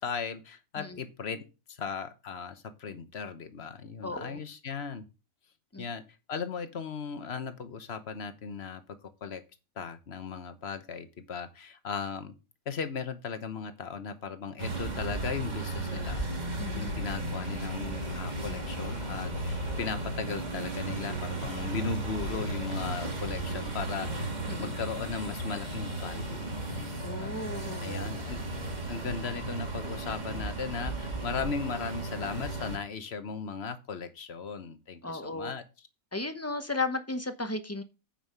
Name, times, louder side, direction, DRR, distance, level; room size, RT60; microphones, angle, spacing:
voice 1, 0.0-5.1 5.8-6.0 6.3-9.4 9.8-12.3 12.7-16.3 16.7-24.3 24.6-27.3 27.8-28.4 28.9-35.6, left 5 dB, 55° left, 10 dB, 1.3 m, -37 dB
voice 2, 4.0-4.4 5.7-5.8 16.6-16.9 24.5-24.8 27.0-28.1 35.0-35.5 36.1-37.8, left 2 dB, 15° left, 9 dB, 0.7 m, -35 dB
sound 1, 14.6-32.8, right 2 dB, 35° right, 1.8 m, -35 dB
9.0 x 5.5 x 5.5 m, 0.30 s
omnidirectional pair, 1.4 m